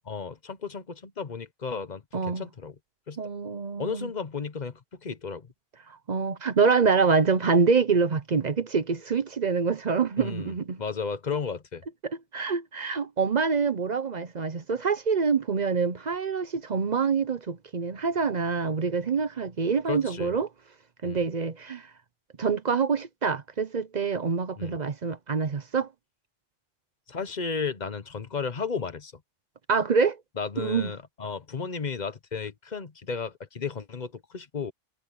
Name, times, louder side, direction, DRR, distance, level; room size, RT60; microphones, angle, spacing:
voice 1, 0.1-2.7 3.1-3.2 3.8-5.5 10.2-11.8 19.9-20.3 21.0-21.2 24.6-24.7 27.1-29.1 30.4-34.7, left 5 dB, 45° left, 1.1 m, -34 dB
voice 2, 2.1-2.5 3.2-4.1 6.1-10.8 12.0-20.5 21.0-21.9 22.4-25.9 29.7-30.2 30.6-30.9, right 5 dB, 45° right, 0.8 m, -26 dB
omnidirectional pair, 1.0 m